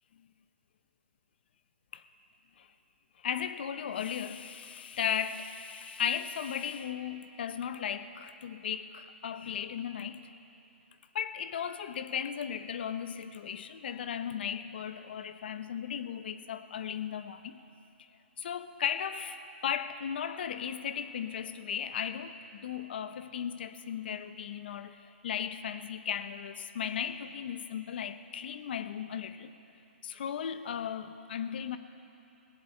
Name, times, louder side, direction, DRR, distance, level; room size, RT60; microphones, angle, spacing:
voice 1, 3.2-10.3 11.1-17.6 18.4-29.5 30.0-31.8, left 8 dB, 55° left, 11 dB, 0.8 m, -36 dB
18.5 x 17.0 x 4.5 m, 2.8 s
hypercardioid pair, 165°, 7 cm